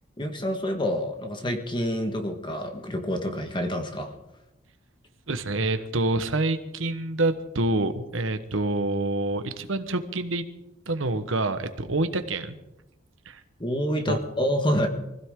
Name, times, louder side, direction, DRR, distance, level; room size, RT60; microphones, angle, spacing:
voice 1, 0.2-4.1 13.6-14.9, equal, 25° left, 5 dB, 1.6 m, -27 dB
voice 2, 5.3-10.4 10.9-12.6 13.3-13.4 14.1-14.2, right 2 dB, 85° right, 9 dB, 1.2 m, -27 dB
24.5 x 15.5 x 3.8 m, 0.95 s
head